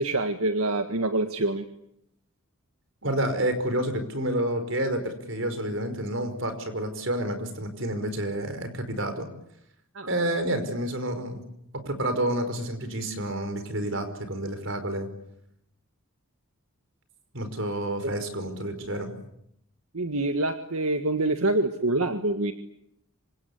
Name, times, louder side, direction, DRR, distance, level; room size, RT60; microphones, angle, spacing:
voice 1, 0.0-1.7 9.9-10.1 10.5-10.6 18.0-18.1 19.9-22.5, right 2 dB, 80° right, 7 dB, 1.8 m, -26 dB
voice 2, 3.0-9.3 10.1-11.4 11.9-15.1 17.3-19.2, right 1 dB, 60° right, 9 dB, 5.1 m, -29 dB
26.5 x 26.0 x 8.5 m, 0.76 s
head